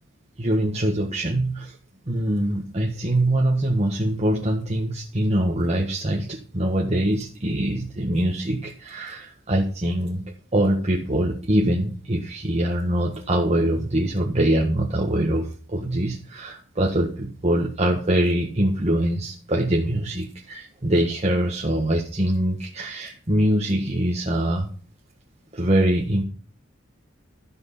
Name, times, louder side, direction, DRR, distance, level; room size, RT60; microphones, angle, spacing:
voice 1, 0.4-1.8 2.1-10.2 10.5-24.7 25.5-26.2, right 1 dB, 30° right, -1 dB, 1.6 m, -23 dB
13.0 x 6.2 x 5.6 m, 0.39 s
head